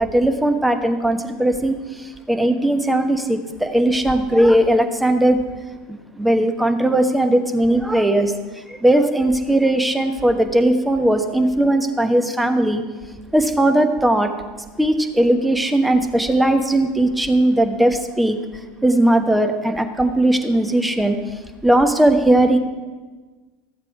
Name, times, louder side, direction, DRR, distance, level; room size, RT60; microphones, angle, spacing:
voice 1, 0.0-5.4 5.9-12.8 13.3-14.3 14.8-18.4 18.8-21.2 21.6-22.6, right 1 dB, 5° right, 6 dB, 1.0 m, -18 dB
13.5 x 7.4 x 4.7 m, 1.3 s
figure-of-eight pair, 80°, 0 cm